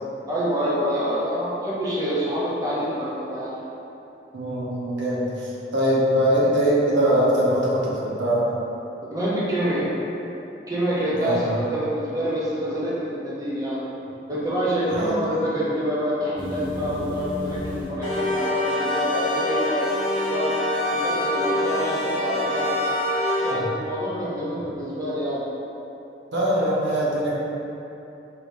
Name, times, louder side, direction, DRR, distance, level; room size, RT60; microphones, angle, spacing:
voice 1, 0.3-3.5 9.1-9.9 10.7-13.8 14.3-19.9 20.3-20.6 20.9-22.8 23.4-25.4, equal, 20° right, -8 dB, 0.5 m, -26 dB
voice 2, 4.3-8.4 11.2-11.5 14.9-15.2 23.5-23.7 26.3-27.3, equal, 85° right, -6 dB, 0.9 m, -22 dB
sound 1, 16.4-23.5, left 1 dB, 25° left, 1.0 m, -26 dB
4.5 x 3.3 x 2.6 m, 2.9 s
head